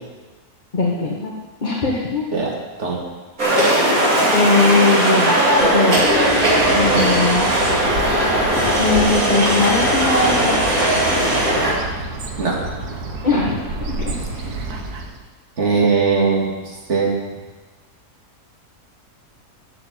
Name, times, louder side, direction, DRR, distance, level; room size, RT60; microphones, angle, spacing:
voice 1, 0.7-1.3 1.6-2.3 4.3-6.0 6.7-7.5 8.8-10.6 13.2-14.5, left 3 dB, 30° left, -4 dB, 1.6 m, -20 dB
sound 1, 3.4-11.7, right 1 dB, 65° right, 3.1 m, -18 dB
Bird, 5.6-15.3, right 2 dB, 85° right, 1.6 m, -30 dB
voice 2, 15.6-17.1, right 4 dB, 50° right, -3 dB, 2.5 m, -19 dB
9.1 x 7.8 x 8.0 m, 1.2 s
omnidirectional pair, 1.6 m